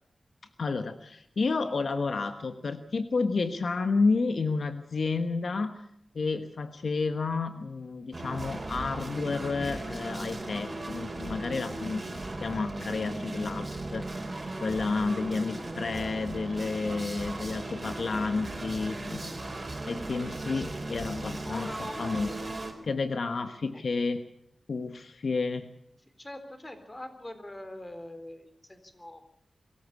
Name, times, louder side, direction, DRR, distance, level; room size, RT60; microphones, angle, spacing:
voice 1, 0.6-5.9 6.1-14.3 14.6-19.3 19.9-22.5 22.8-24.3 24.7-25.7, left 4 dB, 75° left, 9 dB, 1.3 m, -31 dB
sound 1, 8.1-22.7, right 2 dB, 40° right, 4.4 m, -37 dB
voice 2, 20.1-20.8 21.1-22.6 26.2-29.2, left 1 dB, 20° left, 8 dB, 3.8 m, -43 dB
24.0 x 14.5 x 8.4 m, 0.72 s
wide cardioid pair, 70°, 0 cm